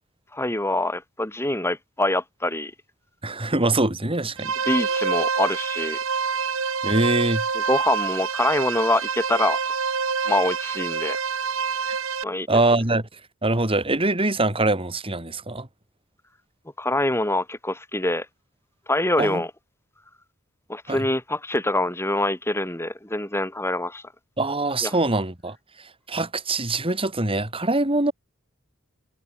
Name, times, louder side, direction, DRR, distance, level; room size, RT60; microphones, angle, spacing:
voice 1, 0.3-2.7 4.7-6.0 7.5-9.6 10.3-11.2 12.2-12.5 16.8-18.3 18.9-19.5 20.7-24.0 24.8-25.0, left 1 dB, 10° left, 3.7 m, -25 dB
voice 2, 3.2-4.5 6.8-7.5 11.9-12.0 12.5-15.7 19.2-19.4 20.9-21.0 24.4-28.1, right 2 dB, 25° right, 3.7 m, -24 dB
sound 1, 4.4-12.2, right 5 dB, 70° right, 1.8 m, -26 dB
head